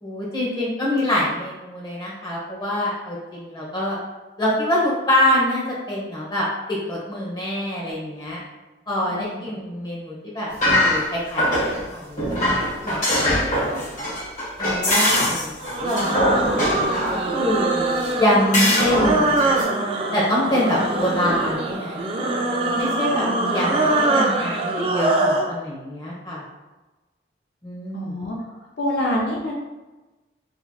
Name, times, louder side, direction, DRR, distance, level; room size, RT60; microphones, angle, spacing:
voice 1, 0.0-4.0 4.4-8.4 8.9-12.2 12.8-13.8 14.6-17.8 18.2-19.4 20.1-22.0 22.8-23.2 23.5-26.4 27.6-28.2, left 1 dB, 25° left, -5 dB, 1.0 m, -25 dB
voice 2, 9.1-9.5 15.1-15.3 20.7-20.8 23.2-23.9 27.9-28.4 28.8-29.5, left 1 dB, 70° left, -3 dB, 0.6 m, -27 dB
sound 1, 10.5-11.8 12.2-17.2 18.0-18.1 18.5-19.6, left 1 dB, 45° left, 1.3 m, -22 dB
sound 2, 15.6-25.5, right 2 dB, 30° right, 0.3 m, -23 dB
4.2 x 3.1 x 2.3 m, 1.1 s
head